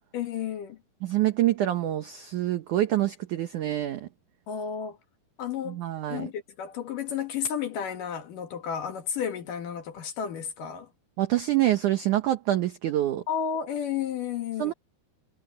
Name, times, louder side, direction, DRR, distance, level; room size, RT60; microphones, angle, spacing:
voice 1, 0.1-0.8 4.5-5.0 5.4-5.8 6.1-10.9 13.3-14.7, left 8 dB, 60° left, 3.0 m, -32 dB
voice 2, 1.0-4.1 5.7-6.3 11.2-13.2 14.6-14.7, right 13 dB, 75° right, 1.8 m, -26 dB
omnidirectional pair, 5.0 m